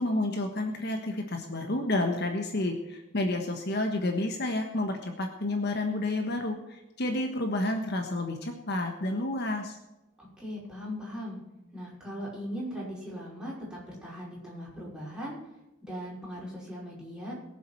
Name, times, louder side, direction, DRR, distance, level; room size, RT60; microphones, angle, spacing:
voice 1, 0.0-9.8, left 2 dB, 50° left, 4 dB, 1.4 m, -30 dB
voice 2, 10.2-11.4 11.7-15.4 15.8-17.4, equal, 5° right, -7 dB, 5.5 m, -39 dB
21.5 x 7.5 x 4.6 m, 0.98 s
head